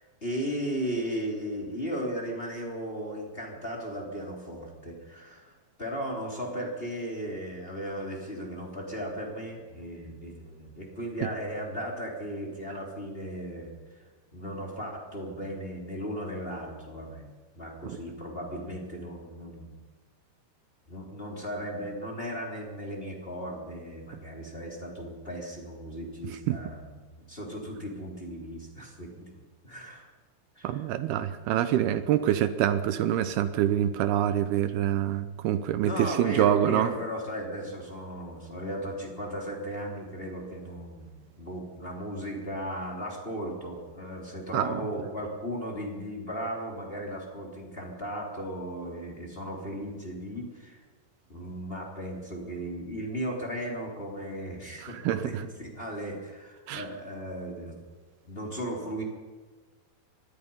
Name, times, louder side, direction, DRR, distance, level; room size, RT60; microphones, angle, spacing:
voice 1, 0.0-5.5 5.8-17.2 17.5-19.7 20.9-29.3 29.6-30.1 30.5-30.8 35.8-41.1 41.4-50.8 51.3-57.8 58.2-59.0, equal, 15° left, -1 dB, 3.2 m, -36 dB
voice 2, 30.6-36.9 44.5-44.8 54.8-55.4 56.7-56.8, right 11 dB, 80° right, 11 dB, 2.6 m, -26 dB
25.5 x 20.5 x 5.6 m, 1.4 s
omnidirectional pair, 4.7 m